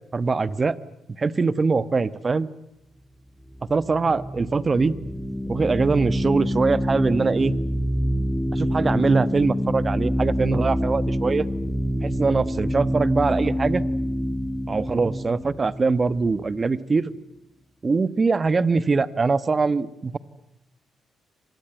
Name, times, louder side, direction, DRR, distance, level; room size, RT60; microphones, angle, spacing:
voice 1, 0.1-0.8 1.2-2.5 3.7-4.9 5.5-7.5 8.5-11.5 12.0-13.8 14.7-17.1 17.8-20.2, right 4 dB, 35° right, 17 dB, 1.2 m, -22 dB
sound 1, 3.5-16.7, equal, ahead, 1.8 m, -26 dB
26.5 x 20.0 x 9.0 m, 0.89 s
cardioid pair, 75°, 0 cm